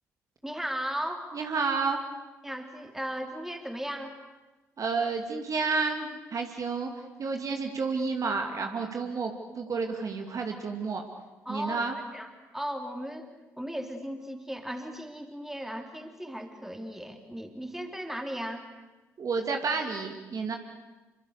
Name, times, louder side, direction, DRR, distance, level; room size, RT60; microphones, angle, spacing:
voice 1, 0.4-1.3 2.4-4.2 11.5-13.3 13.6-18.6, equal, 5° right, 4 dB, 3.9 m, -36 dB
voice 2, 1.3-2.0 4.8-11.0 11.5-12.0 19.2-20.6, right 4 dB, 45° right, 3 dB, 2.4 m, -30 dB
27.5 x 24.5 x 6.8 m, 1.1 s
figure-of-eight pair, 45°, 8 cm